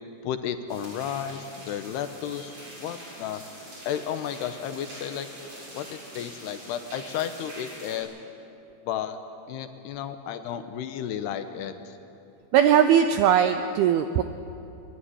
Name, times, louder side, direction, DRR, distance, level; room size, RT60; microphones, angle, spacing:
voice 1, 0.2-2.5 2.8-3.4 3.8-5.3 5.7-8.1 8.9-9.2 9.5-11.9, left 9 dB, 75° left, 9 dB, 2.8 m, -33 dB
sound 1, 0.7-8.0, right 1 dB, 30° right, 7.5 m, -44 dB
voice 2, 12.5-14.2, right 9 dB, 85° right, 9 dB, 2.2 m, -19 dB
23.0 x 21.5 x 10.0 m, 2.7 s
omnidirectional pair, 5.2 m